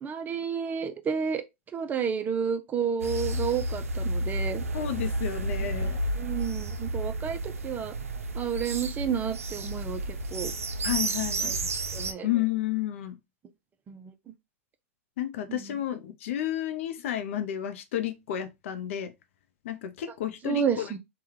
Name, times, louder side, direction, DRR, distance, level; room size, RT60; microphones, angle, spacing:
voice 1, 0.0-1.4 1.7-4.6 6.2-7.9 8.3-10.5 11.4-11.5 11.9-12.3 13.9-14.1 15.5-15.8 20.4-21.0, right 7 dB, 20° right, 0.5 m, -31 dB
sound 1, 3.0-12.1, right 2 dB, 80° right, 0.4 m, -31 dB
voice 2, 4.7-6.0 10.8-11.5 12.2-13.2 15.2-19.1 19.6-20.9, left 11 dB, 60° left, 0.6 m, -31 dB
3.3 x 2.3 x 3.0 m
hypercardioid pair, 100°, 8 cm